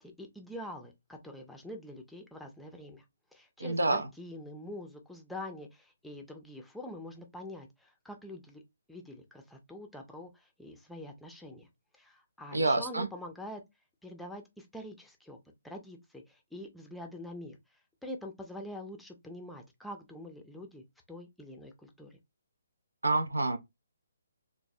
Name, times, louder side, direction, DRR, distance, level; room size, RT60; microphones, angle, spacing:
voice 1, 0.0-3.0 3.3-8.6 8.9-11.7 11.9-13.6 14.0-15.4 15.6-17.6 18.0-22.2, left 1 dB, ahead, 0.5 m, -45 dB
voice 2, 3.6-4.0 12.5-13.1 23.0-23.6, right 2 dB, 90° right, 0.5 m, -27 dB
3.0 x 2.1 x 2.6 m
figure-of-eight pair, 140°, 0 cm